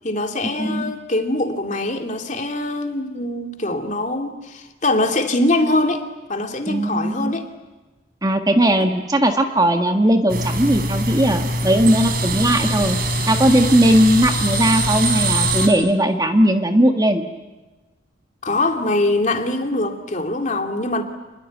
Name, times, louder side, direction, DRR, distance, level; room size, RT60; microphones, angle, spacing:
voice 1, 0.0-7.5 8.8-8.9 12.4-12.5 18.4-21.0, left 2 dB, 40° left, 4 dB, 2.6 m, -23 dB
voice 2, 6.7-7.3 8.2-13.0 13.3-17.3, right 1 dB, 20° right, 5 dB, 1.7 m, -18 dB
sound 1, 10.3-15.7, right 1 dB, 50° right, 3.8 m, -22 dB
28.0 x 21.5 x 9.4 m, 1.2 s
head